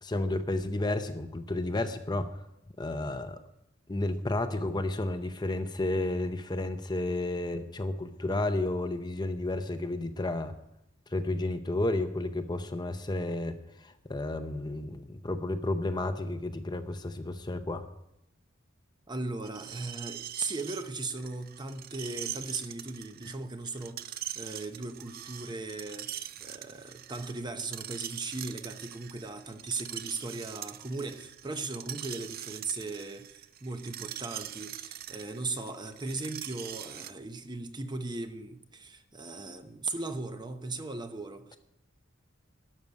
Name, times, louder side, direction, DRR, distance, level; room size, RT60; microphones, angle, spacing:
voice 1, 0.0-2.3 2.8-3.4 3.9-10.5 11.1-17.9, left 2 dB, 20° left, 0.7 m, -32 dB
voice 2, 19.1-41.6, right 3 dB, 20° right, 0.9 m, -38 dB
Screech, 19.4-37.1, right 11 dB, 50° right, 0.5 m, -42 dB
12.5 x 6.6 x 9.3 m
head